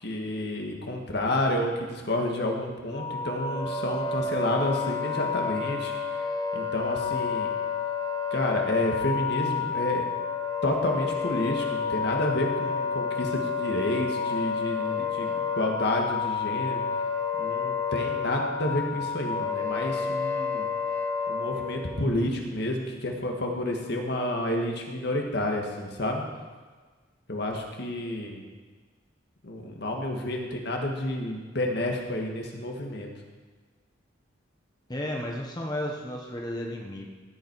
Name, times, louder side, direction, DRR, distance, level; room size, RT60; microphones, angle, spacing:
voice 1, 0.0-5.9 6.5-7.5 8.3-10.0 10.6-16.8 17.4-20.7 21.3-26.2 27.3-28.4 29.4-33.1, left 1 dB, 60° left, 1 dB, 1.7 m, -30 dB
Wind instrument woodwind instrument, 2.9-22.0, left 5 dB, 45° left, 3.2 m, -30 dB
voice 2, 34.9-37.1, left 1 dB, 20° left, 0 dB, 1.1 m, -33 dB
15.5 x 8.4 x 4.7 m, 1.4 s
head